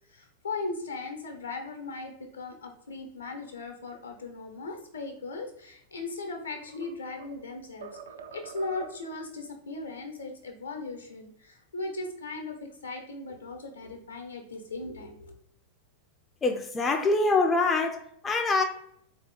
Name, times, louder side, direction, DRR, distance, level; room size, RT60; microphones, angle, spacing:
voice 1, 0.1-8.0 8.3-15.3, left 3 dB, 75° left, 0.8 m, -38 dB
sound 1, 6.1-7.5 7.8-9.2, right 6 dB, 65° right, 0.3 m, -46 dB
voice 2, 16.4-18.6, left 3 dB, 20° left, 0.4 m, -25 dB
3.7 x 2.7 x 3.8 m
figure-of-eight pair, 90°, 0 cm